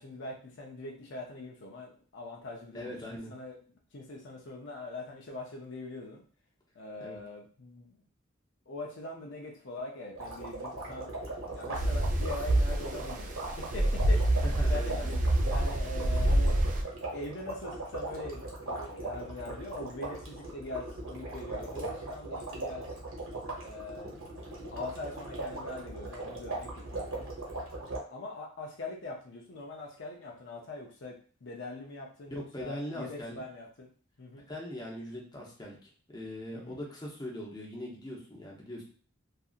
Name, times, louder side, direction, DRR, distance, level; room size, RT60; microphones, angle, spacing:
voice 1, 0.0-3.5 3.9-6.2 6.8-8.0 8.7-11.1 11.6-14.4 14.7-16.6 17.1-22.8 23.6-24.3 24.7-27.3 28.1-31.1 31.4-33.9 34.2-34.4 36.5-36.8, left 2 dB, 60° left, -1 dB, 0.6 m, -42 dB
voice 2, 2.7-3.3 7.0-7.2 14.4-15.2 32.3-33.4 34.5-38.8, left 1 dB, 20° left, -3 dB, 0.7 m, -41 dB
sound 1, 10.2-28.0, right 2 dB, 70° right, 0.9 m, -39 dB
sound 2, 11.7-16.8, right 1 dB, 40° right, 0.3 m, -27 dB
2.7 x 2.5 x 2.4 m, 0.42 s
head